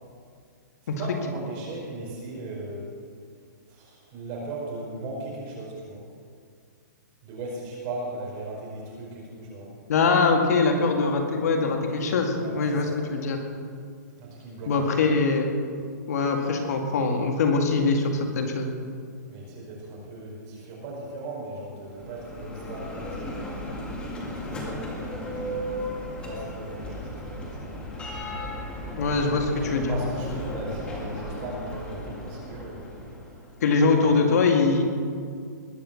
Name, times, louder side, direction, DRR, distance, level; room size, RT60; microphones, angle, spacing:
voice 1, 0.8-2.9 3.7-6.0 7.2-9.7 12.3-13.0 14.2-14.8 19.3-23.8 24.3-25.7 26.2-28.2 29.0-32.9 33.9-34.1, right 2 dB, 30° right, -4 dB, 4.9 m, -38 dB
voice 2, 9.9-12.9 13.1-13.4 14.7-15.5 16.1-18.7 29.0-29.9 33.6-34.8, left 4 dB, 60° left, 3 dB, 2.1 m, -22 dB
Bell, 21.9-33.7, left 1 dB, 10° left, 2.0 m, -36 dB
20.5 x 7.0 x 7.0 m, 2.2 s
hypercardioid pair, 165°, 10 cm